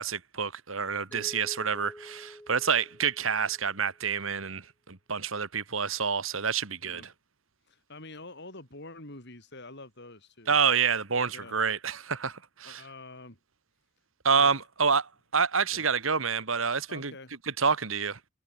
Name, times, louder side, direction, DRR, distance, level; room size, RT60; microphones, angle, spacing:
voice 1, 0.0-7.0 10.5-12.8 14.2-17.1 17.6-18.2, right 6 dB, 70° right, 1.9 m, -28 dB
Mallet percussion, 1.1-4.0, equal, 10° left, 6.4 m, -48 dB
voice 2, 7.7-10.6 11.3-11.6 12.6-13.4 14.3-14.6 15.7-15.9 16.9-17.3, left 2 dB, 55° left, 7.1 m, -47 dB
head